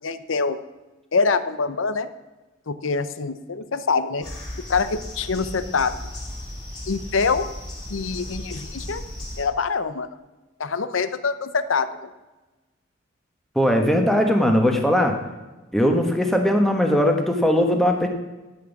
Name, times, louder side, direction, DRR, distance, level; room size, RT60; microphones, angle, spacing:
voice 1, 0.0-0.6 1.1-2.1 2.7-4.3 4.7-5.9 6.9-7.5 7.9-9.0 9.4-10.1 10.6-12.1, left 4 dB, 80° left, 13 dB, 0.7 m, -24 dB
sound 1, 4.2-9.4, left 1 dB, 20° left, 3.6 m, -35 dB
voice 2, 13.5-15.2 15.7-18.1, equal, ahead, 3 dB, 1.3 m, -19 dB
12.5 x 6.1 x 7.2 m, 1.1 s
head